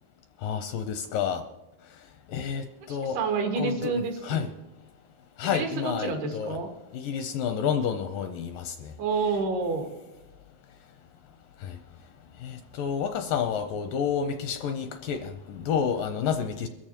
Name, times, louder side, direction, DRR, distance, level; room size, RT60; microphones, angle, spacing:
voice 1, 0.4-1.4 2.3-3.2 3.6-4.5 5.4-6.6 6.9-8.9 11.6-11.8 12.4-16.7, left 7 dB, 80° left, 7 dB, 2.0 m, -30 dB
voice 2, 3.1-4.5 5.4-6.7 9.0-9.9, right 4 dB, 85° right, 3 dB, 3.8 m, -29 dB
22.5 x 14.0 x 2.9 m, 0.99 s
omnidirectional pair, 4.4 m